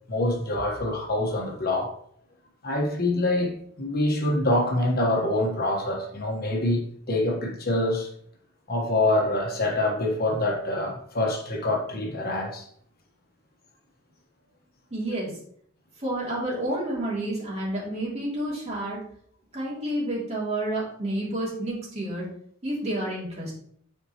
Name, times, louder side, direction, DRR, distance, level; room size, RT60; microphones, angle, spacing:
voice 1, 0.1-1.9 2.6-8.1 8.7-12.7, left 1 dB, 50° left, 1.3 m, -25 dB
voice 2, 14.9-15.3 16.0-19.0 19.5-22.3 22.6-23.5, right 1 dB, 35° right, 2.6 m, -29 dB
9.3 x 4.5 x 3.0 m
head